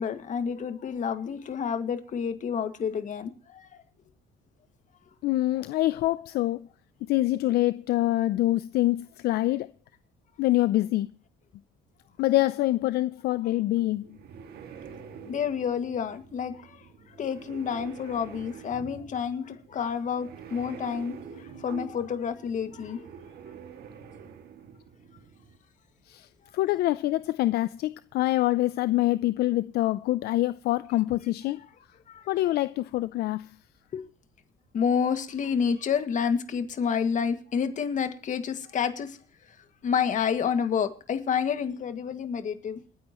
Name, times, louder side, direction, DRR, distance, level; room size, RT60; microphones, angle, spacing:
voice 1, 0.0-3.7 15.3-16.7 17.2-23.1 32.1-32.2 33.9-34.0 34.7-39.2 39.8-42.8, left 7 dB, 50° left, 2.0 m, -29 dB
voice 2, 5.2-6.7 7.0-9.7 10.4-11.1 12.2-14.1 26.1-26.3 26.5-31.6 32.3-33.6, left 16 dB, 70° left, 0.5 m, -25 dB
sound 1, 13.8-25.6, right 7 dB, 70° right, 2.1 m, -46 dB
28.0 x 9.7 x 3.0 m
cardioid pair, 110°, 17 cm